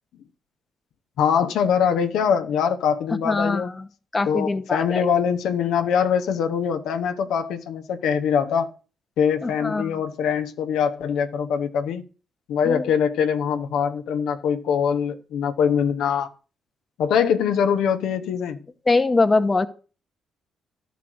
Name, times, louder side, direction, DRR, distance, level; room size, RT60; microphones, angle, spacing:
voice 1, 1.2-3.7 4.3-8.7 9.2-12.0 12.5-16.3 17.0-18.6, left 7 dB, 80° left, 0.9 m, -23 dB
voice 2, 3.2-3.9 4.1-5.0 9.4-9.9 12.6-12.9 18.9-19.7, left 3 dB, 25° left, 1.0 m, -22 dB
12.0 x 5.1 x 6.3 m
cardioid pair, 90°, 0 cm